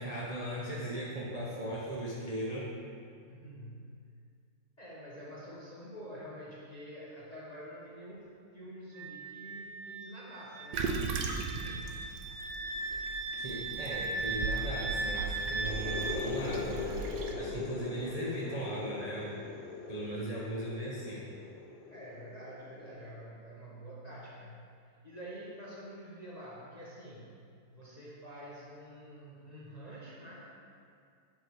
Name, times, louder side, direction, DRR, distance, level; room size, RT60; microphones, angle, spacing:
voice 1, 0.0-2.7 13.4-19.4 19.9-21.3, right 1 dB, 55° right, -7 dB, 0.4 m, -38 dB
voice 2, 3.3-4.0 4.8-8.3 8.5-10.9 11.6-12.0 21.9-24.7 25.0-27.4 27.7-30.5, equal, 30° left, -7 dB, 0.7 m, -47 dB
Wind instrument woodwind instrument, 8.9-16.2, right 3 dB, 85° right, 0.7 m, -38 dB
Toilet flush, 10.7-17.3, right 4 dB, 70° right, 1.2 m, -38 dB
sound 1, 15.5-23.1, left 5 dB, 70° left, 1.3 m, -41 dB
7.5 x 5.3 x 4.6 m, 2.3 s
omnidirectional pair, 2.3 m